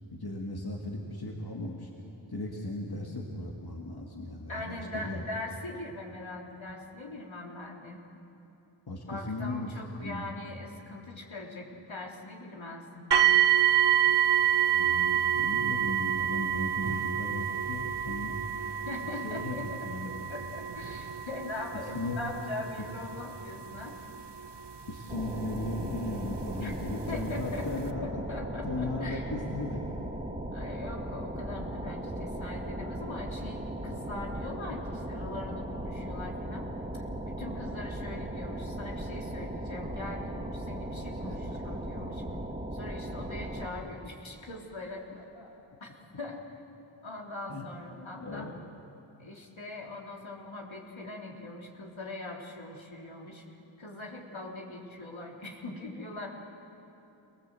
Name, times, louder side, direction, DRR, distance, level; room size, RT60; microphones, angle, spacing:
voice 1, 0.1-1.9 2.3-5.2 8.9-9.7 10.0-10.3 14.7-18.4 19.0-20.1 21.9-22.2 24.9-28.2 28.6-29.9 41.2-41.8 45.1-45.5 47.5-47.7 48.2-48.6, left 2 dB, 50° left, -1 dB, 2.2 m, -37 dB
voice 2, 4.5-8.0 9.1-13.1 18.9-24.1 26.6-26.7 27.1-27.7 28.0-29.3 30.5-36.7 37.3-42.2 42.7-45.2 45.8-45.9 46.2-46.4 47.0-48.5 49.2-53.4 53.8-56.3, left 2 dB, 70° left, -1 dB, 3.4 m, -41 dB
sound 1, 13.1-26.0 26.8-26.9 27.5-27.6, right 10 dB, 55° right, 1.1 m, -28 dB
sound 2, 25.1-43.7, right 1 dB, 15° right, 2.9 m, -37 dB
28.0 x 19.0 x 7.8 m, 3.0 s
wide cardioid pair, 55°, 48 cm